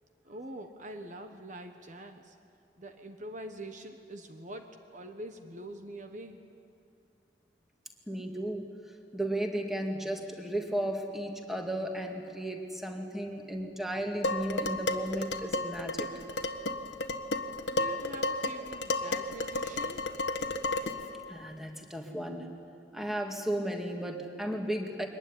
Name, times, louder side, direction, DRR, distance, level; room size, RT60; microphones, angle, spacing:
voice 1, 0.2-2.4 2.8-6.4 17.7-20.1, right 1 dB, 45° right, 6 dB, 1.3 m, -44 dB
voice 2, 8.1-8.7 9.1-16.1 21.3-22.5 22.9-25.1, right 1 dB, ahead, 2 dB, 2.2 m, -34 dB
Dishes pots and pans, 14.2-21.1, left 2 dB, 80° left, 1.3 m, -32 dB
23.5 x 20.0 x 9.9 m, 2.4 s
head